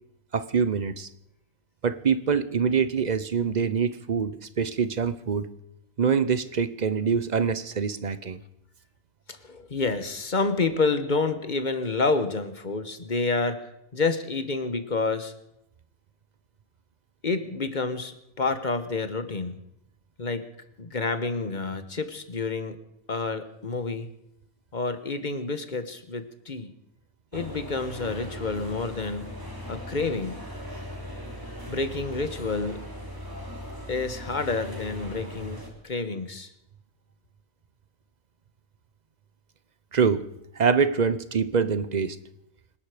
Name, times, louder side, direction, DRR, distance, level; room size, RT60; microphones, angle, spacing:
voice 1, 0.3-1.1 1.8-5.5 6.0-8.4 39.9-40.2 40.6-42.2, right 6 dB, 40° right, 14 dB, 0.8 m, -25 dB
voice 2, 9.3-15.3 17.2-19.6 20.2-20.5 20.8-22.8 23.1-24.1 24.7-26.7 27.3-29.3 29.7-30.4 31.7-32.9 33.9-36.5, left 3 dB, 35° left, 10 dB, 1.3 m, -29 dB
sound 1, 27.3-35.7, left 1 dB, 15° right, 3.3 m, -39 dB
26.0 x 11.0 x 5.0 m, 0.82 s
omnidirectional pair, 1.4 m